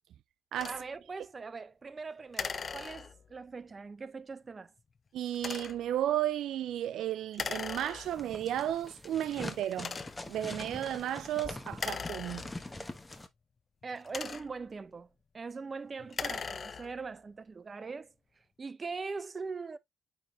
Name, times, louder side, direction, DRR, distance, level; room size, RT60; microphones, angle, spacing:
sound 1, 0.6-0.8 2.3-3.4 5.3-5.9 7.3-8.3 9.0-9.1 9.7-10.4 11.7-12.9 13.8-14.7 16.0-17.1, left 5 dB, 40° left, 0.6 m, -39 dB
voice 1, 0.7-4.7 13.8-15.1 15.3-18.1 18.6-19.8, right 4 dB, 35° right, 0.7 m, -41 dB
voice 2, 5.1-10.0 10.3-12.5, right 12 dB, 75° right, 0.3 m, -33 dB
sound 2, 8.0-13.3, left 2 dB, 15° left, 1.1 m, -43 dB
8.9 x 3.5 x 3.2 m
cardioid pair, 90°, 0 cm